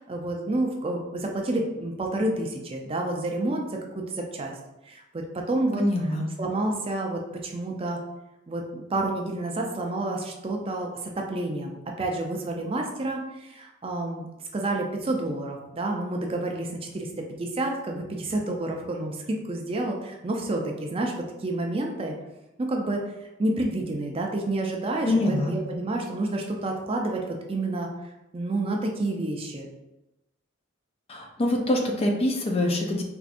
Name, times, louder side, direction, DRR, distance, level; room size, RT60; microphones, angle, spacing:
voice 1, 0.0-4.5 4.9-5.8 6.4-8.0 8.5-22.1 22.6-23.0 23.4-29.7, right 2 dB, 30° right, 1 dB, 0.4 m, -29 dB
voice 2, 5.8-6.3 25.1-25.6 31.1-33.0, left 1 dB, 30° left, 2 dB, 0.4 m, -24 dB
4.5 x 2.5 x 2.5 m, 0.96 s
head